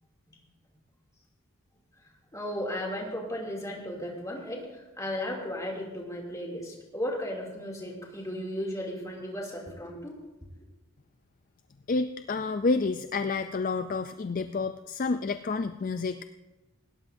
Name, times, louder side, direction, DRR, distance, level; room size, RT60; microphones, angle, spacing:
voice 1, 2.3-10.2, equal, 15° left, -1 dB, 2.7 m, -35 dB
voice 2, 11.9-16.2, left 3 dB, 40° left, 10 dB, 0.3 m, -29 dB
19.5 x 17.0 x 2.7 m, 1.1 s
head